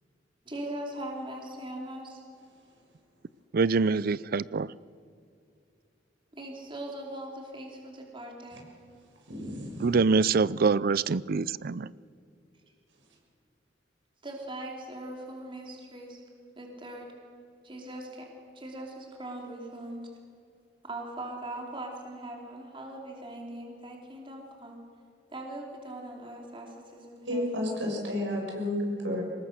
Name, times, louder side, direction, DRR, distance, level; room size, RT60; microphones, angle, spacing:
voice 1, 0.4-2.2 6.3-8.7 14.2-16.2 16.5-17.1 17.6-18.3 18.5-20.1 20.8-24.8 25.3-27.7, right 1 dB, 25° right, 0 dB, 3.1 m, -40 dB
voice 2, 3.5-4.7 9.8-11.9, right 4 dB, 50° right, 20 dB, 0.5 m, -25 dB
voice 3, 9.3-9.9 27.3-29.2, left 1 dB, 80° right, 0 dB, 6.8 m, -31 dB
25.5 x 20.5 x 6.6 m, 2.5 s
head